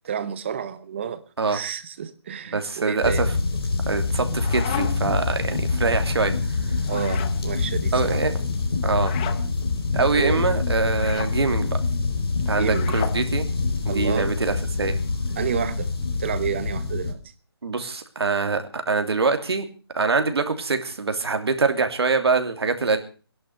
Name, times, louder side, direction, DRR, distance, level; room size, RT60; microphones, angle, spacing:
voice 1, 0.1-1.2 1.5-3.2 6.9-8.2 10.1-10.5 12.5-13.0 13.9-14.3 15.4-15.9 16.2-17.3, right 8 dB, 25° right, 1.1 m, -30 dB
voice 2, 2.5-3.3 3.9-6.3 7.9-8.3 8.8-9.1 9.9-11.8 12.5-13.5 13.8-15.0 17.6-19.6 19.9-23.0, right 4 dB, 75° right, 2.9 m, -24 dB
sound 1, 3.0-17.1, left 3 dB, 65° left, 4.4 m, -25 dB
sound 2, 4.1-5.2 6.8-7.4 8.9-9.4 10.9-11.3 12.6-13.2, left 10 dB, 15° left, 0.9 m, -34 dB
18.0 x 11.0 x 6.5 m
hypercardioid pair, 170°, 13 cm